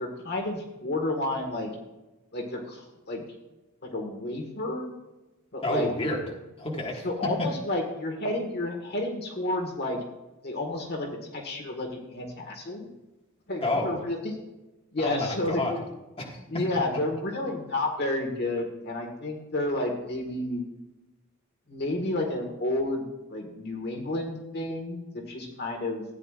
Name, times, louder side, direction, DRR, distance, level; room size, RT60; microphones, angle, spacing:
voice 1, 0.0-1.7 2.3-3.2 3.8-4.9 5.5-5.9 7.0-10.0 10.4-12.9 13.5-14.4 14.9-15.8 16.5-20.6 21.7-26.0, left 1 dB, 50° left, 2 dB, 1.6 m, -31 dB
voice 2, 5.6-6.2 6.6-7.1 7.4-7.5 13.6-14.0 15.0-15.7 16.2-16.6, left 2 dB, 30° left, -1 dB, 1.7 m, -29 dB
15.0 x 9.3 x 2.4 m, 1.0 s
head